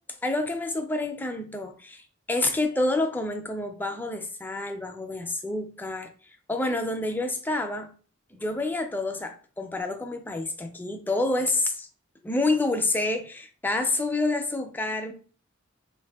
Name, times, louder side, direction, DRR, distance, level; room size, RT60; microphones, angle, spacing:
voice 1, 0.2-2.0 2.3-6.1 6.5-7.9 8.3-11.9 12.2-15.1, left 2 dB, 10° left, 0.3 m, -28 dB
3.5 x 2.5 x 2.3 m
head